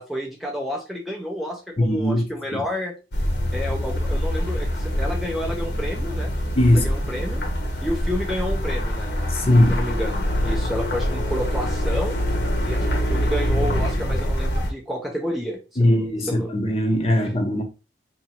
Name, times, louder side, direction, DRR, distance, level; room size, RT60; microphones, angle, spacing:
voice 1, 0.0-2.9 3.5-6.3 6.7-7.4 7.8-9.1 9.7-12.1 12.6-16.6 16.9-17.0, equal, ahead, 0.4 m, -30 dB
voice 2, 1.8-2.2 2.5-2.6 6.6-6.9 9.3-9.8 15.8-17.6, left 1 dB, 30° left, 0.7 m, -19 dB
sound 1, 3.1-14.7, equal, 70° left, 1.1 m, -24 dB
2.8 x 2.6 x 4.3 m
head